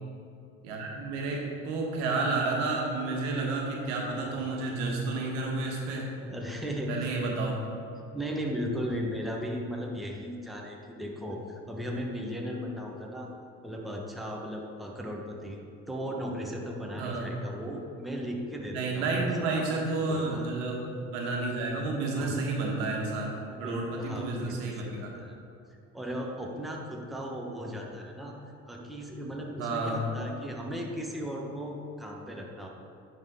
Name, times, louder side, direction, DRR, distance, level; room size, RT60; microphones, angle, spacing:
voice 1, 0.6-6.1 6.9-7.6 17.0-17.3 18.7-25.1 29.6-30.1, right 3 dB, 80° right, -1 dB, 1.4 m, -31 dB
voice 2, 6.3-6.9 8.1-13.3 13.6-15.6 15.9-19.8 20.1-20.4 22.2-22.4 23.5-25.4 25.7-28.3 28.7-32.7, equal, ahead, -1 dB, 1.1 m, -36 dB
10.5 x 4.1 x 3.7 m, 2.6 s
hypercardioid pair, 75°, 34 cm